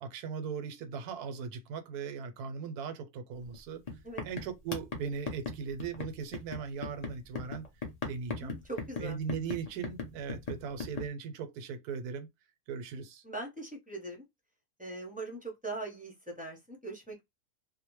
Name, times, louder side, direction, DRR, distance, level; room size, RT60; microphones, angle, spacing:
voice 1, 0.0-3.8 4.2-7.7 8.1-8.6 9.0-12.3 12.7-13.2, right 6 dB, 85° right, 1.1 m, -39 dB
sound 1, 3.4-3.6 3.9-11.1, left 4 dB, 40° left, 0.6 m, -38 dB
voice 2, 8.4-9.2 13.2-14.2 14.8-17.2, right 2 dB, 10° right, 0.4 m, -41 dB
2.7 x 2.1 x 2.9 m
omnidirectional pair, 1.6 m